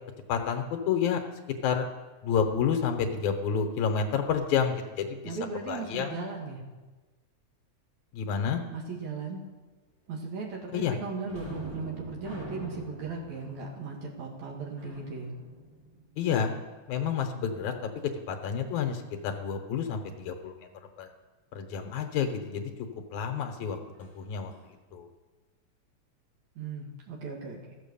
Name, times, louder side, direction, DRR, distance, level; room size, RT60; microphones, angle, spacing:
voice 1, 0.3-1.2 1.6-1.9 2.2-5.4 5.7-6.2 8.1-8.6 10.7-11.0 16.2-16.5 16.9-17.9 18.3-20.7 21.0-21.1 21.5-22.7 23.1-24.5 24.9-25.1, left 7 dB, 85° left, 5 dB, 2.4 m, -29 dB
voice 2, 5.2-6.6 8.7-9.4 10.1-15.3 26.6-27.6, right 4 dB, 75° right, -2 dB, 3.0 m, -37 dB
sound 1, 11.3-16.6 24.0-24.1 24.5-24.7, right 1 dB, 20° right, 0.7 m, -45 dB
13.5 x 7.3 x 7.0 m, 1.3 s
omnidirectional pair, 3.3 m